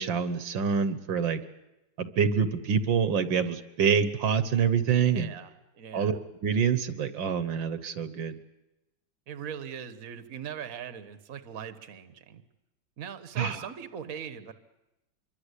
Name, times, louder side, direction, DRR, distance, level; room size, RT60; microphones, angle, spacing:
voice 1, 0.0-1.4 2.0-5.3 5.9-6.2 6.4-8.4 13.4-13.7, right 7 dB, 75° right, 12 dB, 2.0 m, -26 dB
voice 2, 4.8-6.2 9.3-12.4 13.0-14.5, right 8 dB, 50° right, 11 dB, 1.7 m, -41 dB
26.0 x 23.5 x 8.3 m, 0.95 s
omnidirectional pair, 2.1 m